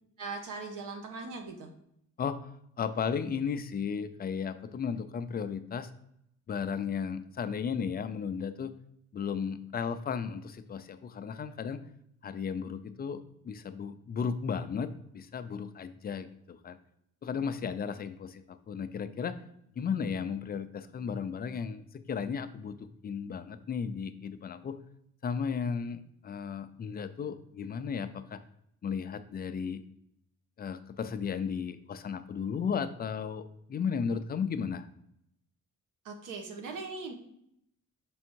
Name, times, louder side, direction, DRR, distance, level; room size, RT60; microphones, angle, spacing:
voice 1, 0.2-1.7 36.0-37.1, right 4 dB, 90° right, 3 dB, 1.2 m, -40 dB
voice 2, 2.8-5.9 6.5-8.7 9.1-11.8 12.2-16.8 17.2-19.3 19.8-22.8 23.0-24.8 25.2-28.4 28.8-29.8 30.6-33.4 33.7-34.9, left 6 dB, 30° left, 10 dB, 0.4 m, -34 dB
6.2 x 3.5 x 4.5 m, 0.75 s
cardioid pair, 155°, 31 cm